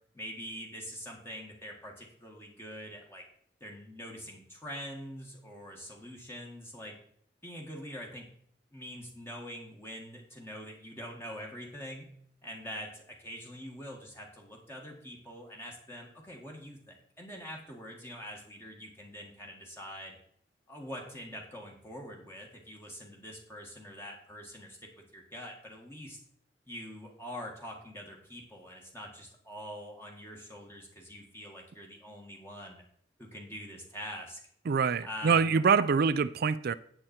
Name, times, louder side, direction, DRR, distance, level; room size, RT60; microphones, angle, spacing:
voice 1, 0.1-3.2 3.6-6.9 7.4-8.3 8.7-12.1 12.4-20.2 20.7-26.2 26.7-32.8 33.2-34.4 35.0-35.9, equal, 15° left, 1.8 m, -44 dB
voice 2, 34.7-36.7, right 5 dB, 55° right, 0.4 m, -25 dB
10.0 x 7.7 x 4.4 m
head